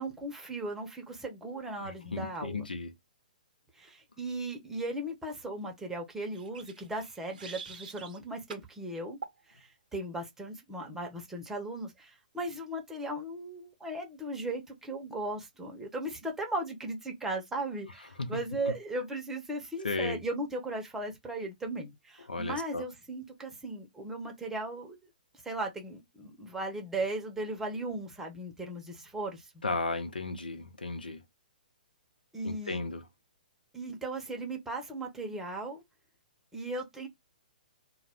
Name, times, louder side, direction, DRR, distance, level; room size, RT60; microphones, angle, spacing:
voice 1, 0.0-2.7 3.8-9.2 9.5-25.0 25.4-29.5 32.3-32.8 33.7-35.8 36.5-37.1, right 2 dB, 5° right, 0.7 m, -37 dB
voice 2, 1.8-2.9 18.2-18.7 19.8-20.2 22.3-22.8 29.6-31.2 32.4-33.1, left 3 dB, 80° left, 0.6 m, -35 dB
sound 1, 6.3-8.2 8.5-8.7 9.2-9.4, right 6 dB, 65° right, 0.6 m, -45 dB
2.3 x 2.1 x 3.4 m
figure-of-eight pair, 120°, 5 cm